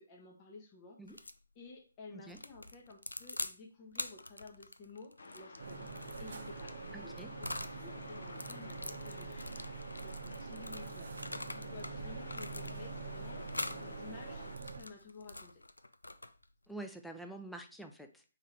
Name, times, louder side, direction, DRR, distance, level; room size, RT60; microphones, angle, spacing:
voice 1, 0.0-7.1 7.4-9.7 10.0-11.2 11.5-15.6, left 3 dB, 25° left, 0 dB, 0.9 m, -53 dB
sound 1, 1.1-1.4 2.3-3.6 3.9-7.8 8.2-11.9 12.3-13.0 13.5-13.8 14.4-16.5, left 2 dB, 90° left, 0.4 m, -44 dB
sound 2, 5.2-14.6, left 3 dB, 65° left, 0.8 m, -51 dB
sound 3, 5.6-14.8, right 4 dB, 60° right, 0.7 m, -45 dB
voice 2, 6.9-7.3 16.7-18.2, right 2 dB, ahead, 5 dB, 0.4 m, -47 dB
3.6 x 3.3 x 4.4 m, 0.36 s
figure-of-eight pair, 145°, 0 cm